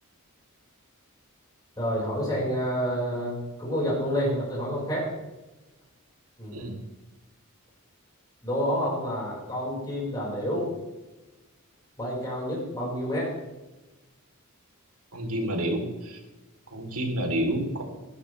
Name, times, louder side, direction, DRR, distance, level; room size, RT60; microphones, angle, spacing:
voice 1, 1.8-5.1 6.4-6.6 8.4-10.7 12.0-13.3, equal, 20° left, -6 dB, 5.3 m, -29 dB
voice 2, 15.1-16.2 16.7-17.8, right 1 dB, 75° right, 2 dB, 3.6 m, -29 dB
20.0 x 12.0 x 3.4 m, 1.1 s
head